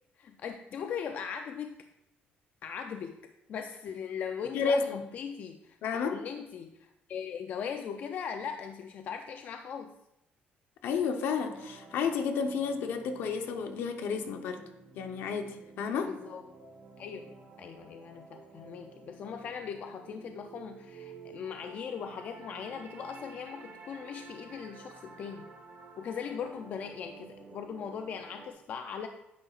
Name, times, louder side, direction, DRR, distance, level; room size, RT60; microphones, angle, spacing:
voice 1, 0.2-1.8 2.6-3.2 3.5-4.8 5.1-5.8 6.0-10.0 16.1-16.4 17.0-25.5 26.0-29.1, left 7 dB, 45° left, 6 dB, 0.4 m, -39 dB
voice 2, 4.5-5.0 5.8-6.2 10.8-14.6 14.9-16.1, left 5 dB, 70° left, 6 dB, 0.9 m, -31 dB
sound 1, 11.3-28.5, right 4 dB, 45° right, 1.2 m, -51 dB
9.7 x 8.0 x 2.4 m, 0.86 s
cardioid pair, 170°, 4 cm